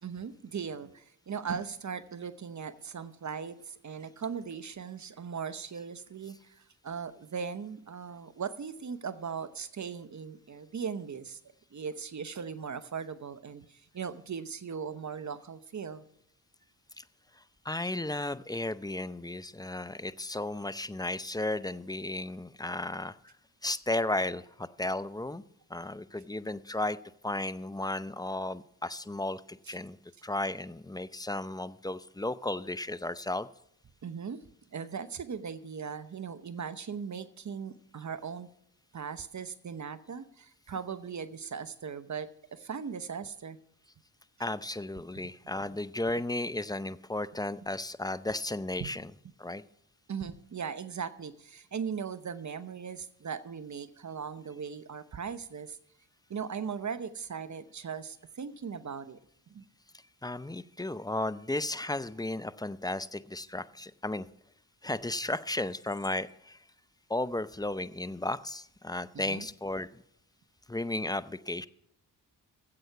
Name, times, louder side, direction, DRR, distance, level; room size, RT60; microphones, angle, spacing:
voice 1, 0.0-11.4 11.7-16.1 29.7-29.8 34.0-34.4 34.7-38.5 38.9-43.6 45.1-45.2 48.8-48.9 50.1-55.8 56.3-59.2 59.5-59.6 69.1-69.5, right 6 dB, 45° right, 13 dB, 0.9 m, -39 dB
voice 2, 17.4-23.3 23.6-25.4 25.7-27.0 27.2-33.5 44.4-49.1 49.4-49.6 60.2-64.3 64.8-66.6 67.1-70.0 70.7-71.7, left 2 dB, 10° left, 15 dB, 0.6 m, -34 dB
13.5 x 8.0 x 5.8 m, 0.74 s
supercardioid pair, 45°, 41 cm